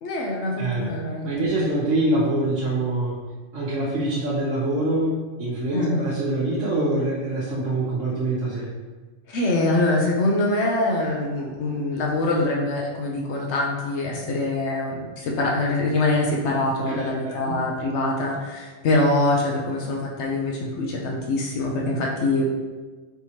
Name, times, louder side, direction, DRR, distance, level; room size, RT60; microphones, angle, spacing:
voice 1, 0.0-1.4 5.7-6.0 9.3-22.5, left 2 dB, 70° left, -1 dB, 0.9 m, -24 dB
voice 2, 0.6-0.9 1.2-3.2 3.5-8.7 16.8-17.5, right 2 dB, 85° right, -8 dB, 1.1 m, -25 dB
4.5 x 3.5 x 2.8 m, 1.3 s
omnidirectional pair, 1.2 m